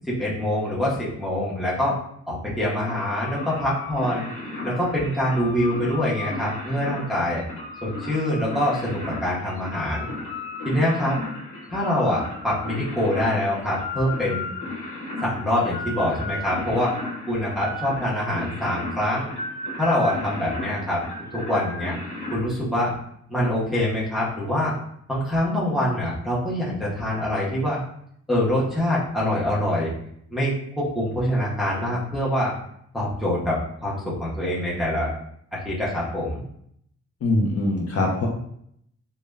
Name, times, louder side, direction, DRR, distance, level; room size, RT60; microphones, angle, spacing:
voice 1, 0.1-2.0 2.3-4.3 4.6-7.4 7.8-10.1 10.6-11.2 11.7-14.5 15.2-16.9 17.3-19.3 19.8-21.0 21.5-22.0 22.3-22.9 23.3-24.7 25.1-27.8 28.3-29.9 30.3-32.5 32.9-35.1 35.5-36.4, left 1 dB, ahead, -7 dB, 0.6 m, -24 dB
sound 1, 2.8-22.4, left 2 dB, 90° left, 1.0 m, -34 dB
voice 2, 37.2-38.3, left 2 dB, 55° left, -1 dB, 0.5 m, -22 dB
2.1 x 2.0 x 3.3 m, 0.69 s
wide cardioid pair, 165°, 29 cm